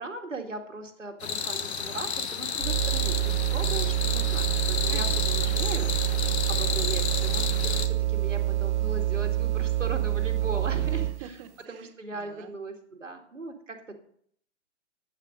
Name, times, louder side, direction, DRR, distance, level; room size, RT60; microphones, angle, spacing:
voice 1, 0.0-11.4 11.7-13.9, right 2 dB, 90° right, 4 dB, 2.3 m, -38 dB
sound 1, 1.2-7.9, left 6 dB, 60° left, 1.4 m, -31 dB
sound 2, 2.6-11.3, right 14 dB, 70° right, 0.5 m, -27 dB
voice 2, 4.8-5.6 10.9-12.5, right 9 dB, 30° right, 10 dB, 1.1 m, -46 dB
11.5 x 9.1 x 5.1 m, 0.63 s
figure-of-eight pair, 125°, 36 cm